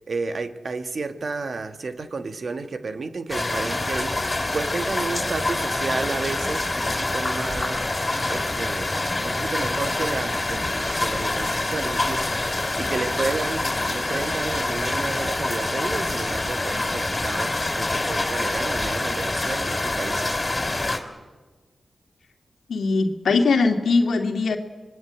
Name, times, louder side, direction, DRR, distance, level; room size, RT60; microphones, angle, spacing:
voice 1, 0.0-20.4, right 4 dB, 65° right, 1.7 m, -32 dB
sound 1, 3.3-21.0, left 2 dB, 30° left, 3.6 m, -26 dB
voice 2, 22.7-24.6, left 4 dB, 85° left, 2.2 m, -20 dB
26.0 x 21.0 x 8.8 m
cardioid pair, 50°, 0 cm